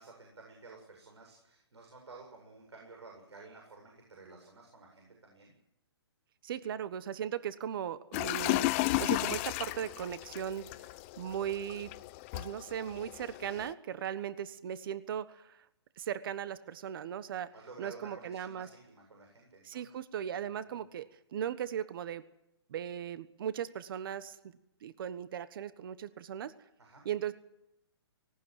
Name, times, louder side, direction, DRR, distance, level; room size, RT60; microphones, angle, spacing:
voice 1, 0.0-5.6 17.5-19.9 26.8-27.0, right 3 dB, 90° right, 1 dB, 7.7 m, -52 dB
voice 2, 6.4-10.9 11.2-11.9 12.3-15.7 16.0-17.5 17.8-18.7 19.6-22.2 22.7-24.4 24.8-26.5 27.0-27.3, right 9 dB, 55° right, 14 dB, 1.3 m, -38 dB
sound 1, 8.1-13.7, left 19 dB, 30° left, 0.8 m, -34 dB
18.5 x 18.5 x 9.3 m, 0.81 s
hypercardioid pair, 145°, 14 cm